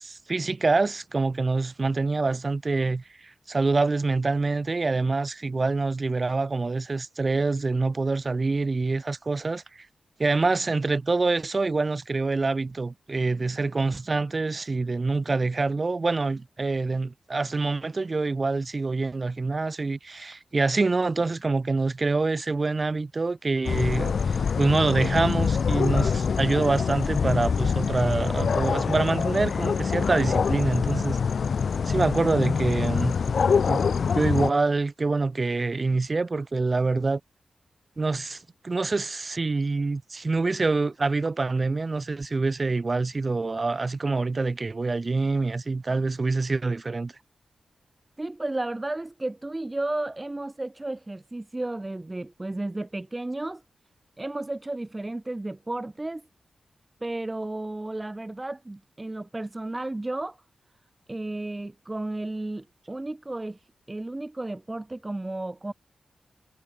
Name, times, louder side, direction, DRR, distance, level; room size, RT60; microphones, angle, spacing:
voice 1, 0.0-9.9 10.2-31.2 31.9-33.1 33.4-33.8 34.1-37.2 38.0-47.1, right 3 dB, 40° right, 2.9 m, -26 dB
sound 1, 23.6-34.5, left 6 dB, 70° left, 0.3 m, -25 dB
voice 2, 48.2-53.6 54.2-56.2 57.0-60.4 61.1-63.6 63.9-65.7, right 2 dB, 25° right, 1.3 m, -33 dB
cardioid pair, 60°, 0 cm